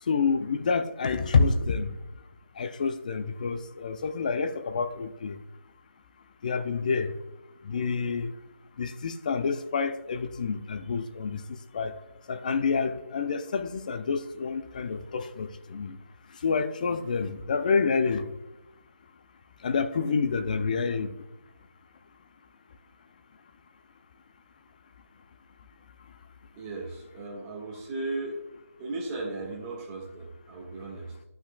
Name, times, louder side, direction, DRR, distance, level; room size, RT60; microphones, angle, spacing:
voice 1, 0.0-2.0 2.6-5.4 6.4-7.2 7.6-8.3 8.8-12.0 12.3-16.0 16.3-18.4 19.6-21.1, left 5 dB, 30° left, 0.4 m, -28 dB
voice 2, 26.5-28.4 28.8-31.2, right 2 dB, 15° right, 1.3 m, -36 dB
12.5 x 5.9 x 2.2 m
figure-of-eight pair, 165°, 9 cm